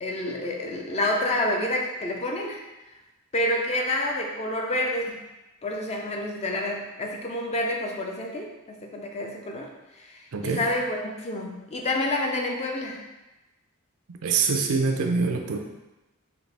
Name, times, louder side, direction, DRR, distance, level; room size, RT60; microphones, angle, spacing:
voice 1, 0.0-2.6 3.3-5.2 5.6-9.7 10.0-13.0, left 1 dB, 30° left, 1 dB, 0.5 m, -28 dB
voice 2, 10.3-10.7 14.1-15.6, right 4 dB, 80° right, 3 dB, 0.5 m, -25 dB
4.1 x 2.8 x 3.3 m, 1.0 s
head